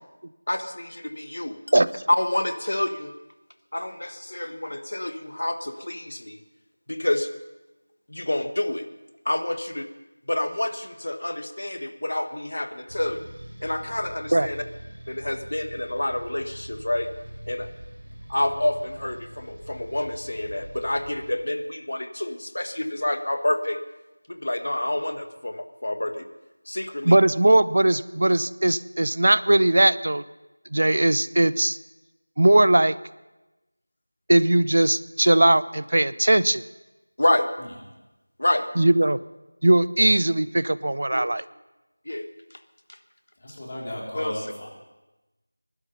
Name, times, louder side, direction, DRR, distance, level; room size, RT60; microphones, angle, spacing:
voice 1, 0.5-1.6 2.1-3.1 3.7-6.4 6.9-7.3 8.1-8.8 9.2-9.9 10.3-13.2 13.6-14.6 15.1-17.1 17.5-17.7 18.3-23.8 24.3-26.3 26.7-27.2 37.2-37.5 38.4-38.6 41.1-41.3 42.0-42.3 44.1-44.3, left 1 dB, 60° left, 8 dB, 1.4 m, -28 dB
sound 1, 12.9-21.4, right 1 dB, 70° right, 5.6 m, -43 dB
voice 2, 27.0-30.2 30.7-31.8 32.4-33.0 34.3-36.6 38.8-39.2 39.6-41.4, right 1 dB, 55° right, 17 dB, 0.6 m, -19 dB
voice 3, 43.4-44.7, left 1 dB, 30° left, -3 dB, 3.6 m, -35 dB
20.5 x 12.0 x 5.5 m, 1.0 s
figure-of-eight pair, 170°, 0 cm